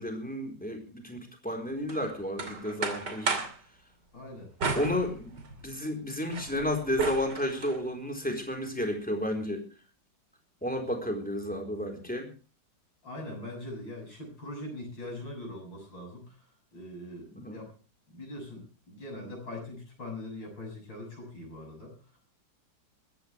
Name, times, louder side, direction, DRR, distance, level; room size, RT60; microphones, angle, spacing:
voice 1, 0.0-3.4 4.7-9.6 10.6-12.3 17.3-17.6, left 1 dB, 5° left, 4 dB, 3.9 m, -32 dB
sound 1, 1.9-3.6 4.6-5.7 6.1-7.8, right 4 dB, 60° right, 3.3 m, -34 dB
voice 2, 4.1-4.5 13.0-16.4 16.7-17.7 18.1-21.9, left 1 dB, 70° left, 2 dB, 7.8 m, -42 dB
21.0 x 15.0 x 3.4 m, 0.35 s
omnidirectional pair, 2.1 m